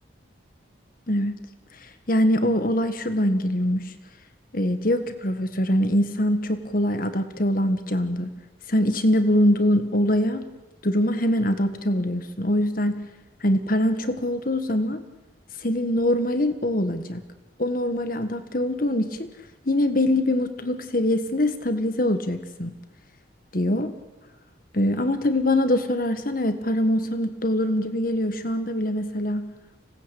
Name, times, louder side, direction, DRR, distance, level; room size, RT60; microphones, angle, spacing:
voice 1, 2.1-3.8 4.5-8.3 8.7-10.5 10.8-12.9 13.4-15.0 15.6-17.2 17.6-19.3 19.6-22.7 23.5-23.9 24.7-29.5, left 1 dB, 45° left, 9 dB, 1.6 m, -23 dB
25.5 x 18.5 x 8.4 m, 1.2 s
head